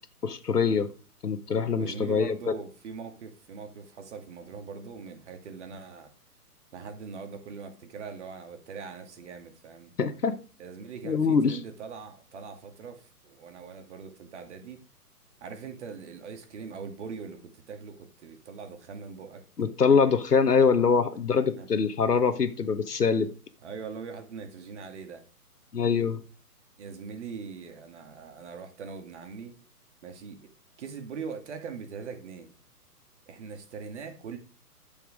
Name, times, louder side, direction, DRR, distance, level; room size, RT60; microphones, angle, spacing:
voice 1, 0.2-0.9 1.2-2.3 10.0-10.3 11.0-11.6 19.6-23.3 25.7-26.2, left 5 dB, 75° left, 1.3 m, -24 dB
voice 2, 1.8-6.1 6.7-9.9 10.6-14.8 15.4-19.4 21.6-21.7 23.6-25.2 26.8-29.5 30.0-30.5 30.8-32.5 33.3-34.4, right 5 dB, 45° right, 2.3 m, -41 dB
10.5 x 7.2 x 5.1 m
figure-of-eight pair, 130°, 47 cm